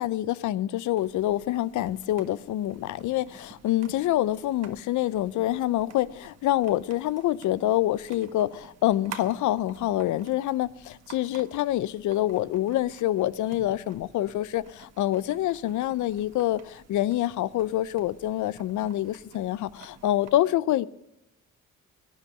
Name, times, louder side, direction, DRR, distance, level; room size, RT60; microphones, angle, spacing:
voice 1, 0.0-20.9, left 14 dB, 75° left, 0.6 m, -26 dB
sound 1, 1.0-20.3, right 8 dB, 55° right, 1.5 m, -50 dB
18.5 x 10.0 x 6.6 m
cardioid pair, 90°, 30 cm